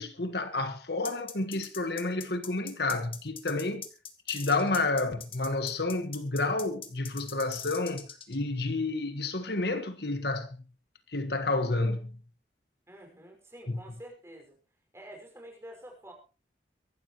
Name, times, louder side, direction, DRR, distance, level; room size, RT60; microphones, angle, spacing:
voice 1, 0.0-3.9 4.3-10.6 11.1-12.2 13.7-13.8, left 2 dB, 60° left, 1.6 m, -30 dB
sound 1, 1.0-8.4, left 7 dB, 30° left, 2.0 m, -42 dB
voice 2, 12.9-14.6 14.9-16.1, right 1 dB, 15° right, 5.8 m, -48 dB
24.5 x 12.5 x 3.1 m
head